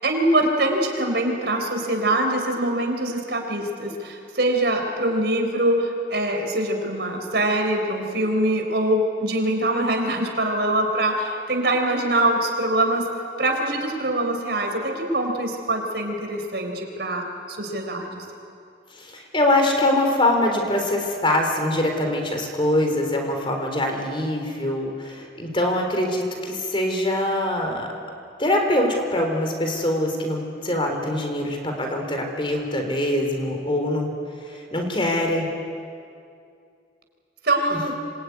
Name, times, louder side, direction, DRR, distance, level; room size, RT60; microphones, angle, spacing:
voice 1, 0.0-13.1 13.4-18.2 37.4-37.9, right 1 dB, 70° right, 4 dB, 4.4 m, -23 dB
voice 2, 18.9-27.9 28.4-34.1 34.4-35.5 37.7-37.8, left 1 dB, 30° left, 3 dB, 4.0 m, -23 dB
26.5 x 21.5 x 9.7 m, 2.4 s
head